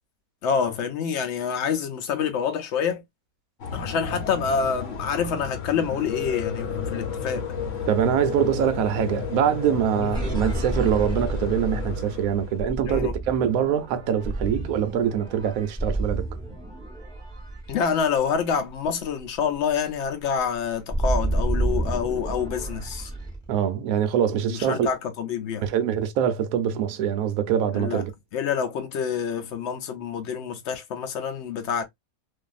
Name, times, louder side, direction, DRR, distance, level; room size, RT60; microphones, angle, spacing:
voice 1, 0.4-3.0 3.7-7.4 10.0-10.1 12.8-13.2 17.7-23.1 24.5-25.7 27.7-28.0 28.3-31.8, left 7 dB, 75° left, 0.6 m, -27 dB
sound 1, 3.6-12.6, left 5 dB, 55° left, 1.0 m, -32 dB
voice 2, 7.9-16.3 23.5-24.9 25.6-28.1, right 9 dB, 70° right, 0.9 m, -24 dB
sound 2, 10.1-18.5 18.9-19.1 19.4-23.5, right 2 dB, 5° left, 0.7 m, -30 dB
2.6 x 2.5 x 2.3 m
omnidirectional pair, 1.8 m